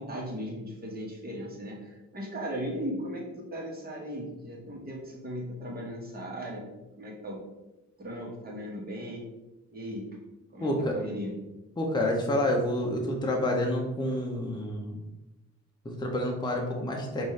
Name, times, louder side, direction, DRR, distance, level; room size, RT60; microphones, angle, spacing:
voice 1, 0.0-7.4 8.0-9.3 9.7-10.0 10.5-11.3, equal, 30° right, -2 dB, 1.4 m, -37 dB
voice 2, 10.6-10.9 11.8-15.0 15.8-17.2, left 1 dB, 15° left, 0 dB, 0.7 m, -28 dB
5.3 x 2.7 x 3.2 m, 1.0 s
cardioid pair, 90°, 30 cm